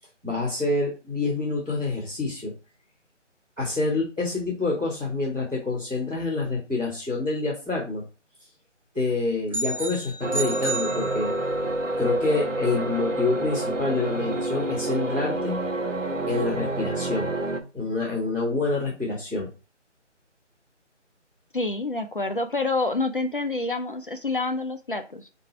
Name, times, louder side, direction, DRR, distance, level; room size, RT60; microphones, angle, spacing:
voice 1, 0.2-2.5 3.6-8.0 8.9-11.3 12.0-15.6 16.3-17.3 17.7-19.5, left 3 dB, 5° right, -17 dB, 0.9 m, -27 dB
sound 1, 9.5-11.7, right 3 dB, 30° right, 0.5 m, -32 dB
sound 2, 10.2-17.6, right 2 dB, 90° right, 0.9 m, -28 dB
voice 2, 21.5-25.3, left 3 dB, 45° left, 6 dB, 0.5 m, -27 dB
4.5 x 2.6 x 4.3 m, 0.31 s
figure-of-eight pair, 160°, 36 cm